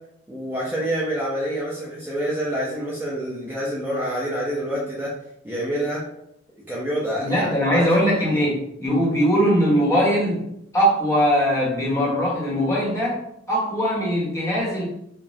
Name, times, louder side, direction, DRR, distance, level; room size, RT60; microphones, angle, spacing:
voice 1, 0.3-5.1 5.4-6.0 6.7-7.9 8.2-8.4, equal, 10° right, -7 dB, 0.7 m, -27 dB
voice 2, 7.2-10.4 10.7-13.2 13.5-14.9, equal, 15° left, -5 dB, 1.3 m, -21 dB
5.0 x 2.4 x 2.7 m, 0.77 s
head